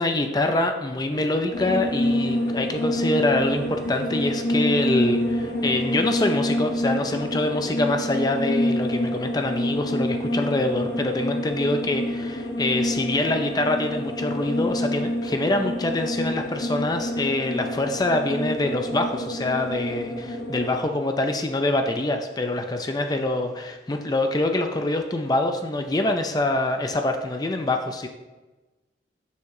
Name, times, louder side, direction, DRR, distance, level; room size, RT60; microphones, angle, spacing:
voice 1, 0.0-28.1, left 2 dB, 20° left, 5 dB, 0.4 m, -25 dB
sound 1, 1.1-6.4, right 2 dB, 45° right, 0.6 m, -44 dB
sound 2, 1.5-20.8, left 1 dB, 60° left, 1.1 m, -27 dB
7.1 x 3.7 x 6.4 m, 1.1 s
head